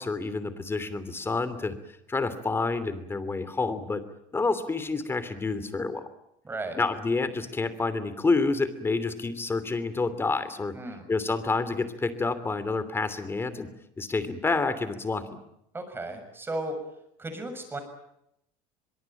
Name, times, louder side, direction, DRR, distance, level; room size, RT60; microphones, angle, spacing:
voice 1, 0.0-1.7 2.1-4.0 4.3-6.1 6.8-10.7 11.1-13.7 14.0-15.2, left 3 dB, 15° left, 13 dB, 3.0 m, -28 dB
voice 2, 6.4-6.8 10.7-11.0 15.7-16.8 17.2-17.8, right 2 dB, 15° right, 7 dB, 6.6 m, -35 dB
23.5 x 23.0 x 9.1 m, 0.81 s
cardioid pair, 130°, 14 cm